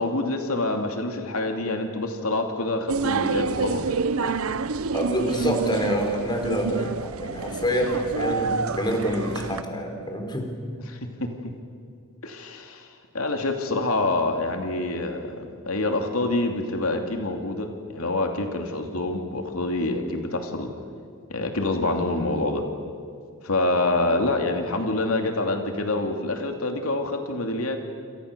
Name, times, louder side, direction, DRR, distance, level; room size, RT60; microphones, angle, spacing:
voice 1, 0.0-3.8 10.9-11.3 12.2-12.9 13.1-20.7 21.3-22.6 23.4-27.8, left 2 dB, 85° left, 4 dB, 2.7 m, -26 dB
sound 1, 2.9-9.6, right 4 dB, 85° right, 0.8 m, -28 dB
voice 2, 4.9-10.5, equal, 20° left, 4 dB, 4.0 m, -26 dB
28.0 x 27.5 x 6.8 m, 2.3 s
head